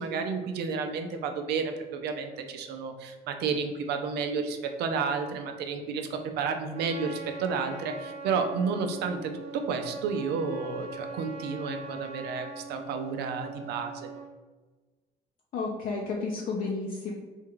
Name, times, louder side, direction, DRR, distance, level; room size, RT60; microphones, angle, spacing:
voice 1, 0.0-14.1, right 5 dB, 75° right, 5 dB, 0.6 m, -31 dB
Trumpet, 6.7-14.3, right 4 dB, 40° right, 0.7 m, -42 dB
voice 2, 15.5-17.1, left 4 dB, 55° left, -2 dB, 0.6 m, -31 dB
3.6 x 2.5 x 4.5 m, 1.3 s
cardioid pair, 110°, 17 cm